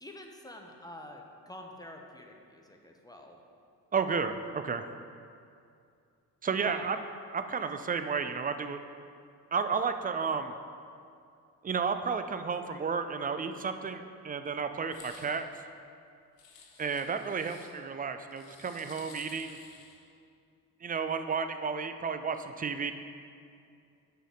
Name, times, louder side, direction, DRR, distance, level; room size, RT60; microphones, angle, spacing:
voice 1, 0.0-3.4 6.6-6.9, left 1 dB, 10° left, 2 dB, 1.0 m, -47 dB
voice 2, 3.9-4.9 6.4-7.0 7.3-8.8 9.5-10.5 11.6-15.5 16.8-19.6 20.8-22.9, right 5 dB, 20° right, 8 dB, 0.4 m, -32 dB
sound 1, 14.8-15.4 16.4-17.7 18.3-20.0, left 5 dB, 90° left, 0.8 m, -53 dB
6.2 x 5.1 x 6.6 m, 2.4 s
hypercardioid pair, 45°, 48 cm